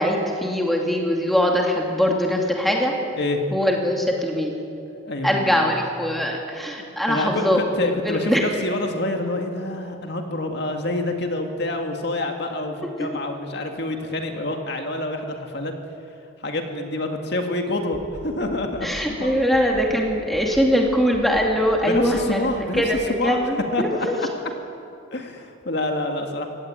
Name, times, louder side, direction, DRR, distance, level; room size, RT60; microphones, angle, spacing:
voice 1, 0.0-2.9 3.5-4.5 5.2-7.6 8.0-8.4 18.8-22.5 22.7-24.2, equal, ahead, 0 dB, 2.5 m, -22 dB
voice 2, 4.9-5.7 7.1-15.7 16.4-19.4 21.9-22.8 23.1-23.4 23.7-24.5 25.1-26.5, left 2 dB, 55° left, 3 dB, 2.2 m, -27 dB
sound 1, 17.9-18.4 18.7-19.2 19.5-20.0 20.3-20.8 21.1-21.6 21.9-22.4 22.7-22.8, equal, 35° left, 6.7 m, -42 dB
24.5 x 17.5 x 9.1 m, 2.6 s
head